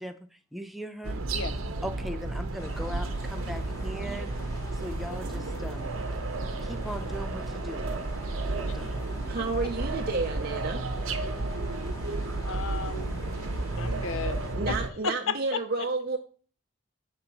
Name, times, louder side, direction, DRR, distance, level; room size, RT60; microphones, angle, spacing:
voice 1, 0.0-1.2 1.8-4.3 4.7-5.9 6.6-8.0 8.5-9.0, equal, ahead, 7 dB, 0.4 m, -39 dB
sound 1, 1.0-14.9, right 2 dB, 80° right, 0.8 m, -32 dB
sound 2, 2.6-14.6, equal, 15° left, 0.9 m, -46 dB
voice 2, 9.3-10.8 14.5-16.2, right 3 dB, 45° right, 2 dB, 0.6 m, -31 dB
voice 3, 12.4-13.2 13.8-14.8 15.0-15.6, left 5 dB, 70° left, 12 dB, 0.6 m, -33 dB
5.1 x 3.8 x 5.8 m, 0.42 s
head